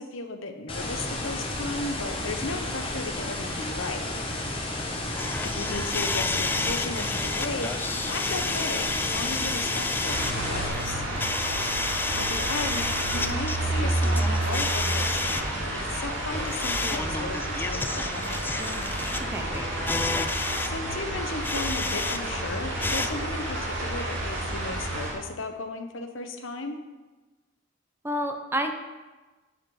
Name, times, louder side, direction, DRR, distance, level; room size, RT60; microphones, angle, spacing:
voice 1, 0.0-4.1 5.4-11.0 12.1-18.7 20.6-26.8, left 3 dB, 75° left, 5 dB, 1.0 m, -35 dB
sound 1, 0.7-10.7, left 1 dB, 30° left, 1.4 m, -32 dB
sound 2, 5.2-22.2 22.5-23.1, left 3 dB, 10° left, 0.4 m, -31 dB
sound 3, 10.1-25.1, right 1 dB, 70° right, 2.8 m, -30 dB
voice 2, 19.2-19.7 28.0-28.7, equal, 10° right, 5 dB, 0.8 m, -29 dB
10.0 x 4.5 x 7.1 m, 1.2 s
head